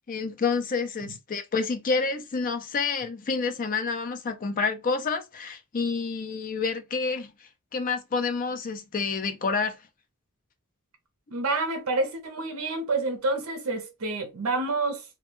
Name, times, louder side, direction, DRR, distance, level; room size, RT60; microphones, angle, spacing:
voice 1, 0.1-7.3 7.7-9.8, left 4 dB, 40° left, 0.4 m, -28 dB
voice 2, 11.3-15.0, right 3 dB, 70° right, 0.6 m, -28 dB
2.2 x 2.1 x 3.0 m
head